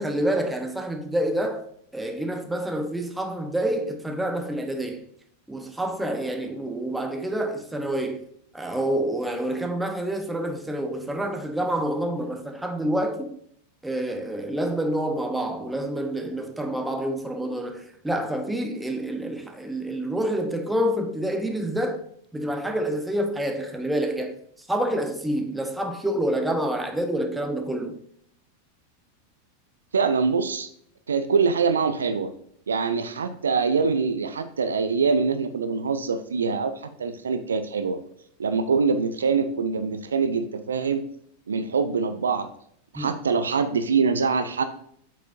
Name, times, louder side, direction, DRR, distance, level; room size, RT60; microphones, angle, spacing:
voice 1, 0.0-1.6 1.9-5.0 5.5-8.2 8.5-13.4 13.8-22.0 22.3-24.4 24.7-28.0 42.9-43.1, right 1 dB, 5° right, 1.0 m, -27 dB
voice 2, 29.9-30.7 31.1-32.3 32.7-38.0 38.4-41.0 41.5-42.5 42.9-44.6, right 5 dB, 70° right, 0.6 m, -24 dB
8.2 x 6.3 x 2.6 m
figure-of-eight pair, 90°, 0 cm